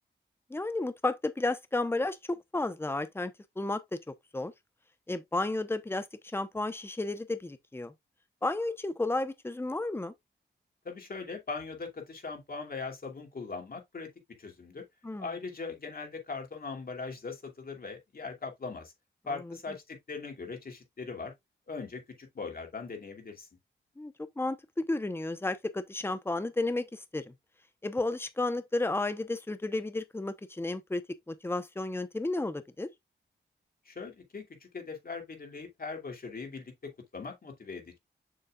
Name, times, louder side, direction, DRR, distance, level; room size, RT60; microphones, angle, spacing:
voice 1, 0.5-3.3 3.6-3.8 4.3-4.5 5.1-6.1 6.3-7.9 8.4-10.1 15.0-15.3 19.4-19.6 24.0-27.3 27.8-32.9, left 2 dB, 10° left, 0.9 m, -32 dB
voice 2, 10.8-14.1 14.4-14.8 15.2-18.9 19.3-21.3 21.7-23.5 33.8-34.4 34.7-38.0, left 4 dB, 50° left, 2.6 m, -40 dB
6.9 x 6.4 x 2.4 m
wide cardioid pair, 85°, 19 cm